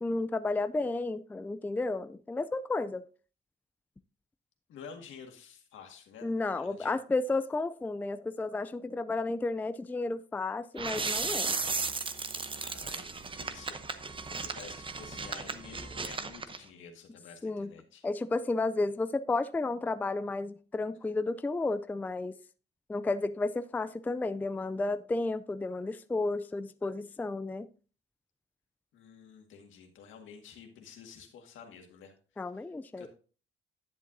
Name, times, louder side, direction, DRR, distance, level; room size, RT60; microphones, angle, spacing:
voice 1, 0.0-3.1 6.2-11.5 17.4-17.7 18.0-22.4 22.9-27.7 32.4-33.1, left 3 dB, 10° left, 0.3 m, -32 dB
voice 2, 4.7-6.3 6.6-6.9 12.5-18.0 28.9-32.1 32.5-32.7 33.0-33.1, left 6 dB, 80° left, 1.9 m, -50 dB
sound 1, 10.8-16.6, right 4 dB, 25° right, 0.8 m, -35 dB
10.5 x 7.4 x 2.6 m
cardioid pair, 90°, 20 cm